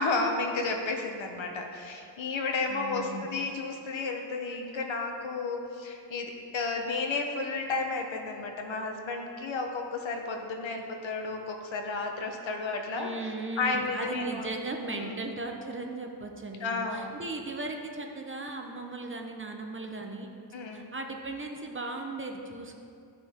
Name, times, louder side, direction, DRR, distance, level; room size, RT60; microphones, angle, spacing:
voice 1, 0.0-14.5 14.9-15.2 16.6-17.2 20.5-20.9, left 3 dB, 75° left, 3 dB, 1.2 m, -32 dB
voice 2, 2.7-3.3 13.0-20.3 20.7-22.8, right 2 dB, 25° right, 3 dB, 0.9 m, -37 dB
14.0 x 6.0 x 3.7 m, 2.5 s
wide cardioid pair, 95°, 46 cm